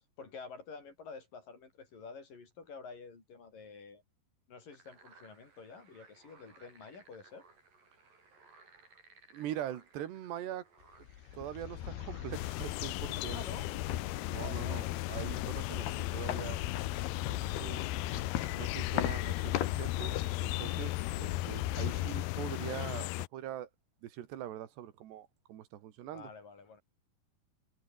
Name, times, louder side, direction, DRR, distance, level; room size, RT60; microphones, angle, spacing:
voice 1, 0.2-4.0 4.5-7.4 13.3-13.7 14.3-14.9 26.1-26.8, left 4 dB, 55° left, 6.8 m, -49 dB
sound 1, 4.7-12.5, right 4 dB, 55° right, 9.0 m, -61 dB
voice 2, 9.3-10.7 11.3-13.4 14.3-15.9 16.1-16.6 17.2-17.9 18.6-23.7 24.0-26.3, right 11 dB, 90° right, 4.0 m, -43 dB
sound 2, 11.0-23.1, left 11 dB, 70° left, 3.7 m, -38 dB
sound 3, 12.3-23.3, left 23 dB, 90° left, 2.1 m, -37 dB
omnidirectional pair, 4.8 m